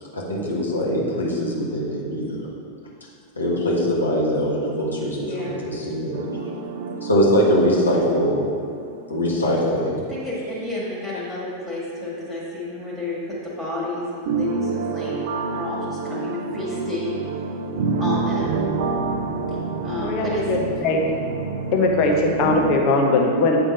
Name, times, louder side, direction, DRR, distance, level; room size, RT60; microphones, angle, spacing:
voice 1, 0.3-2.3 3.4-6.2 7.0-8.4 9.1-10.0, equal, 75° left, -5 dB, 1.5 m, -22 dB
voice 2, 5.2-5.6 10.1-17.2 18.0-18.6 19.8-20.4, left 2 dB, ahead, -8 dB, 1.9 m, -31 dB
sound 1, 6.1-9.5 9.7-9.8 14.3-22.8, right 4 dB, 55° right, 0.5 m, -28 dB
voice 3, 20.0-21.0 21.7-23.6, left 2 dB, 40° left, 0 dB, 1.0 m, -20 dB
8.6 x 3.5 x 5.3 m, 2.3 s
figure-of-eight pair, 90°, 0 cm